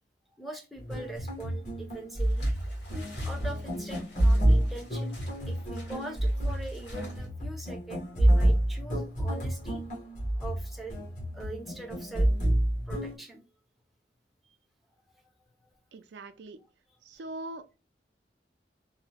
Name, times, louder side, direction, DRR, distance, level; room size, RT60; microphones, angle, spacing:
voice 1, 0.4-2.6 3.2-5.2 5.4-9.8 10.4-11.0 11.3-12.3 12.9-13.4, right 2 dB, ahead, 0.5 m, -42 dB
sound 1, 0.8-13.1, right 1 dB, 45° left, 1.1 m, -28 dB
sound 2, 2.2-7.3, left 2 dB, 80° left, 1.5 m, -52 dB
voice 2, 15.9-16.6 17.0-17.7, right 2 dB, 75° right, 0.4 m, -41 dB
2.7 x 2.0 x 2.8 m
head